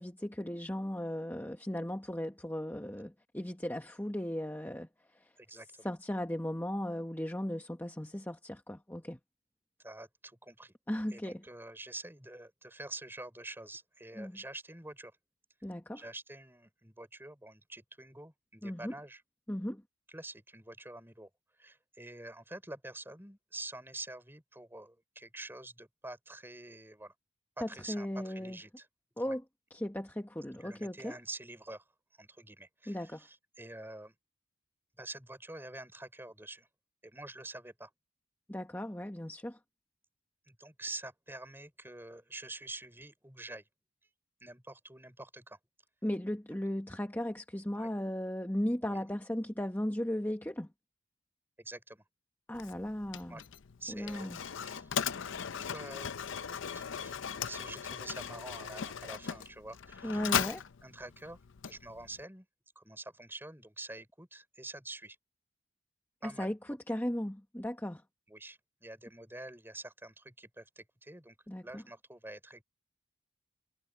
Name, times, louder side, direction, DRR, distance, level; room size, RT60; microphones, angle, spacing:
voice 1, 0.0-4.9 5.1-9.2 10.9-11.4 14.2-14.4 15.6-16.0 18.6-18.9 19.5-19.8 27.6-28.6 29.2-29.4 29.7-31.2 32.9-33.3 38.5-39.6 46.0-50.7 52.5-53.4 53.9-54.4 60.0-60.6 66.2-68.0 71.5-71.8, left 1 dB, 10° left, 1.2 m, -36 dB
voice 2, 5.4-5.9 9.8-10.7 11.1-15.1 16.0-19.2 20.1-21.3 21.6-27.1 27.6-28.9 29.2-29.4 30.6-31.8 32.2-34.1 35.0-36.7 37.0-37.9 40.5-43.6 44.4-45.6 47.7-47.9 48.9-49.1 51.6-52.0 53.3-53.4 53.8-54.3 54.6-54.9 55.6-56.1 56.7-60.5 60.8-61.4 61.7-62.5 62.8-65.2 66.2-66.5 68.3-71.4 71.6-72.6, right 2 dB, 10° right, 5.4 m, -47 dB
Mechanisms, 52.5-62.2, left 7 dB, 65° left, 0.6 m, -38 dB
head